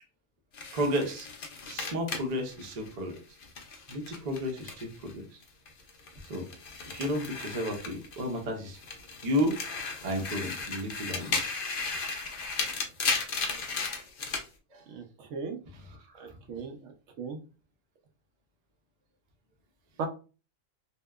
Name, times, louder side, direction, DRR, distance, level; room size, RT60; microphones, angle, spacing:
sound 1, 0.5-5.1 5.4-8.4 8.7-14.5, left 4 dB, 70° left, 0.5 m, -35 dB
voice 1, 0.7-1.3 1.7-3.2 3.9-5.2 6.3-6.5 6.8-8.8 9.2-9.6 10.0-11.4 14.7-14.8 15.7-16.2, equal, 85° right, 2 dB, 0.3 m, -32 dB
voice 2, 14.9-15.6 16.2-16.9 17.2-17.4 20.0-20.1, right 5 dB, 65° right, 4 dB, 0.8 m, -37 dB
2.8 x 2.1 x 2.2 m, 0.33 s
omnidirectional pair, 1.6 m